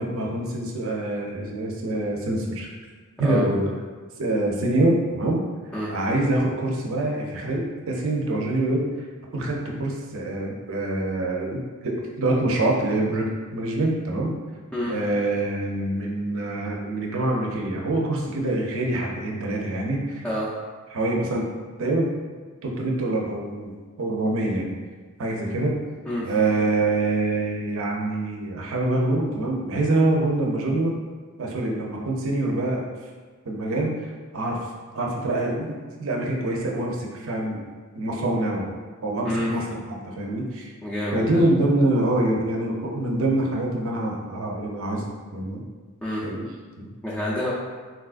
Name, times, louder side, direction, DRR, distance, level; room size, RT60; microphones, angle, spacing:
voice 1, 0.0-2.7 3.2-3.7 4.2-5.4 5.9-8.8 9.3-14.3 14.9-20.3 20.9-21.5 21.8-22.1 22.6-23.7 24.0-24.7 25.2-25.8 26.2-30.9 31.4-32.8 33.5-34.6 34.9-37.6 37.9-38.7 39.0-40.7 41.1-45.0 45.3-45.6 46.2-46.9, right 2 dB, 65° right, -1 dB, 0.6 m, -25 dB
voice 2, 40.8-41.3 46.0-46.2 47.0-47.5, left 1 dB, 5° left, -8 dB, 0.4 m, -27 dB
3.9 x 2.3 x 2.4 m, 1.4 s
head